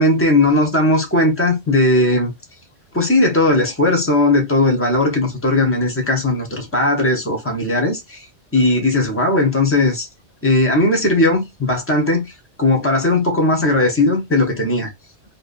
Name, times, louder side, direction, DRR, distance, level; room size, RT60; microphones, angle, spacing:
voice 1, 0.0-2.3 2.9-8.3 8.5-10.1 10.4-12.3 12.6-14.9, left 2 dB, 15° left, 0.6 m, -17 dB
2.8 x 2.1 x 2.4 m
omnidirectional pair, 1.2 m